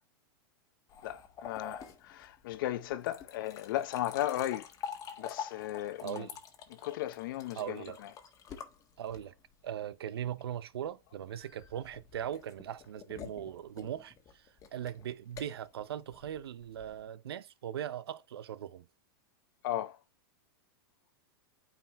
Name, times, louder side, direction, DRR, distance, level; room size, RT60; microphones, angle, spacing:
sound 1, 0.9-9.5 11.3-17.0, left 8 dB, 25° left, 1.5 m, -47 dB
voice 1, 1.0-4.7 5.2-6.3 6.7-8.1 19.6-20.0, left 13 dB, 60° left, 0.9 m, -36 dB
voice 2, 6.0-6.4 7.5-8.0 9.0-9.3 9.6-18.9, right 10 dB, 85° right, 0.8 m, -40 dB
8.8 x 5.0 x 3.1 m
hypercardioid pair, 130°, 13 cm